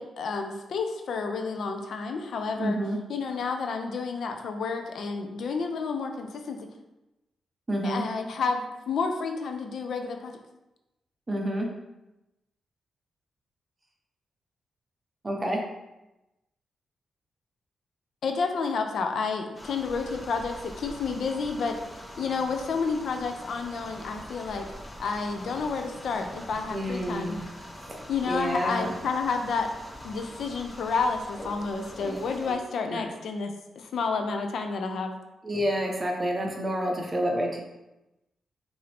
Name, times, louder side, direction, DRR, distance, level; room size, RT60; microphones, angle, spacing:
voice 1, 0.0-2.8 3.1-6.7 7.8-10.4 18.2-21.8 22.2-24.7 25.0-27.4 28.1-29.7 30.0-35.1, left 4 dB, 65° left, 5 dB, 0.5 m, -30 dB
voice 2, 2.6-3.0 7.7-8.0 11.3-11.7 15.2-15.6 26.7-27.3 27.9-28.9 32.0-32.2 32.5-32.6 32.9-33.1 35.4-37.6, equal, 20° right, 1 dB, 0.7 m, -29 dB
sound 1, 19.5-32.5, equal, 15° left, 0.8 m, -43 dB
5.6 x 2.7 x 3.4 m, 0.97 s
wide cardioid pair, 140°, 0 cm